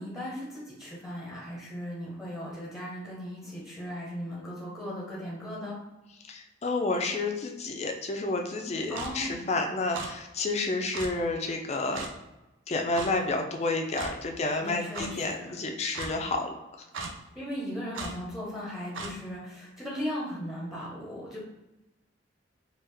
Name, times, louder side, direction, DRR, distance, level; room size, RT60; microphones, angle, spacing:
voice 1, 0.0-5.8 8.9-9.4 14.6-15.5 17.3-21.4, equal, ahead, -6 dB, 0.8 m, -37 dB
voice 2, 6.3-12.1 12.7-16.5, left 2 dB, 35° left, 3 dB, 0.4 m, -30 dB
Clock, 8.9-9.1 9.9-10.1 10.9-11.1 11.9-12.1 12.9-13.1 13.9-14.1 14.9-15.1 15.9-16.1 16.9-17.1 17.9-18.1 18.9-19.1, right 3 dB, 85° right, 0.5 m, -36 dB
3.4 x 2.4 x 3.3 m, 1.0 s
head